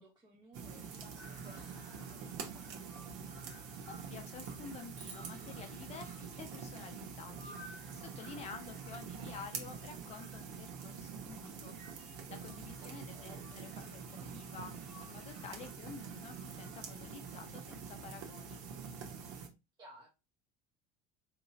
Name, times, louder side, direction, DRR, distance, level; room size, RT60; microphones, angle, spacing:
voice 1, 0.0-3.5 9.1-9.5 12.8-13.7 19.8-20.1, right 2 dB, 20° right, -2 dB, 0.7 m, -59 dB
sound 1, 0.5-19.5, right 6 dB, 85° right, 0.9 m, -46 dB
sound 2, 1.1-18.7, left 1 dB, 10° left, 1.2 m, -60 dB
voice 2, 3.9-12.0 12.3-18.6, left 5 dB, 30° left, 5 dB, 0.5 m, -50 dB
sound 3, 4.9-7.4, right 4 dB, 55° right, 1.3 m, -57 dB
3.9 x 2.9 x 2.7 m, 0.25 s
cardioid pair, 160°, 21 cm